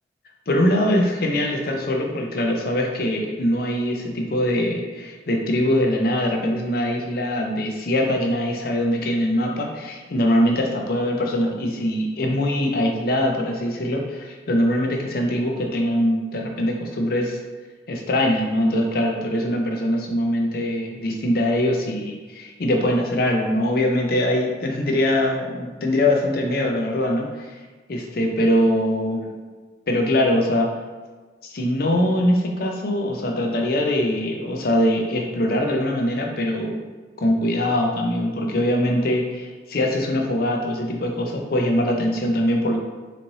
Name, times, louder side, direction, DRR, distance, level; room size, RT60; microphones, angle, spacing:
voice 1, 0.5-17.4 17.9-27.5 27.9-29.3 29.9-30.7 31.4-36.8 37.2-42.8, left 1 dB, 55° left, 2 dB, 0.5 m, -22 dB
4.1 x 3.1 x 2.7 m, 1.4 s
head